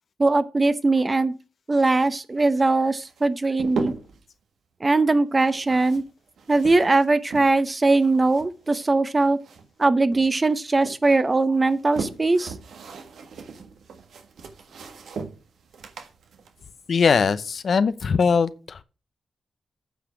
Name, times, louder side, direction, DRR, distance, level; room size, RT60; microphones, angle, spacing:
voice 1, 0.2-1.3 1.7-3.9 4.8-6.0 6.5-9.4 9.8-12.5, right 3 dB, 35° right, 1.0 m, -20 dB
sound 1, 3.0-4.3 5.4-7.7 8.0-9.8 10.1-11.0 11.5-17.6, right 5 dB, 80° right, 1.5 m, -37 dB
voice 2, 16.9-18.8, left 5 dB, 65° left, 0.7 m, -21 dB
8.9 x 5.1 x 5.9 m
cardioid pair, 50°, 0 cm